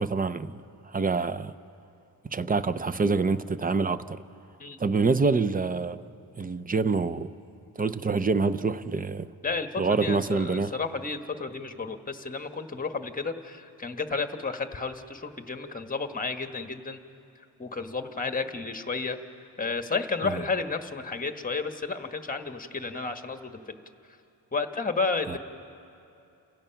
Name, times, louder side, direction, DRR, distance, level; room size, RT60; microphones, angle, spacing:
voice 1, 0.0-1.5 2.3-4.2 4.8-6.0 6.4-7.3 7.8-9.3 9.8-10.8 20.2-20.4 25.3-25.4, right 4 dB, 20° right, 0.5 m, -26 dB
voice 2, 9.4-17.0 17.6-19.2 19.6-23.6 24.5-25.4, left 4 dB, 20° left, 1.1 m, -32 dB
29.0 x 16.0 x 5.8 m
cardioid pair, 105°, 41 cm